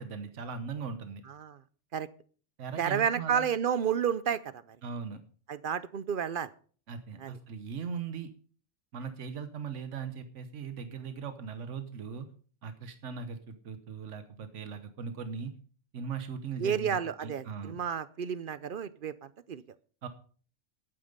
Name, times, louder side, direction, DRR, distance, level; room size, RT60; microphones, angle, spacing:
voice 1, 0.0-1.2 2.6-3.4 4.8-5.2 6.9-8.3 8.9-12.3 12.6-15.5 15.9-17.8 20.0-20.1, right 6 dB, 80° right, 9 dB, 1.3 m, -39 dB
voice 2, 1.3-1.6 1.9-2.1 2.8-4.8 5.5-6.5 7.2-7.4 16.6-19.6, right 8 dB, 55° right, 16 dB, 0.7 m, -31 dB
11.5 x 9.0 x 5.3 m, 0.44 s
omnidirectional pair, 1.2 m